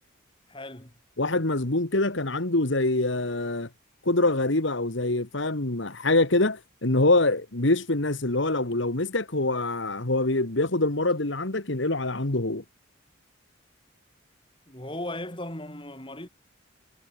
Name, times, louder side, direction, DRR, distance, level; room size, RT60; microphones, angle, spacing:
voice 1, 0.5-0.9 14.7-16.3, left 1 dB, 25° left, 5.3 m, -37 dB
voice 2, 1.2-3.7 4.1-12.6, left 2 dB, 65° left, 1.9 m, -25 dB
head